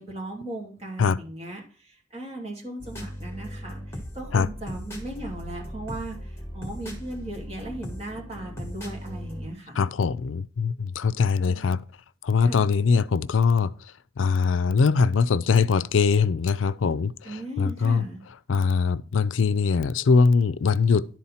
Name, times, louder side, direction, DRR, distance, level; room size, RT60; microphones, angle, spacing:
voice 1, 0.0-9.8 11.5-11.8 12.4-12.6 17.2-18.2, right 1 dB, 30° right, 2.6 m, -37 dB
sound 1, 2.8-9.5, equal, 15° left, 1.8 m, -38 dB
voice 2, 9.8-11.8 12.2-13.7 14.2-18.0 18.5-21.1, left 5 dB, 90° left, 0.4 m, -22 dB
11.0 x 4.3 x 5.6 m
head